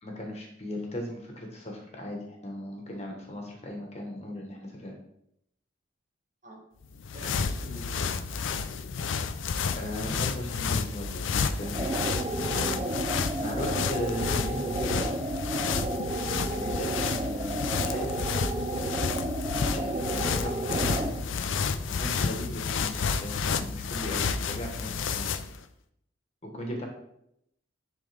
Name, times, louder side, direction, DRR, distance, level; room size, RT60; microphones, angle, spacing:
voice 1, 0.0-5.0 9.7-12.1 12.4-15.1 16.5-18.2 19.7-21.1 21.9-25.3 26.4-26.9, equal, 35° left, 1 dB, 1.2 m, -38 dB
sound 1, 6.8-25.6, left 5 dB, 80° left, 0.5 m, -31 dB
voice 2, 7.1-8.0 16.6-16.9 20.7-21.5 26.5-26.9, equal, 40° right, -2 dB, 1.8 m, -45 dB
sound 2, 11.6-21.2, right 2 dB, 25° right, 0.4 m, -32 dB
10.5 x 3.6 x 3.4 m, 0.75 s
head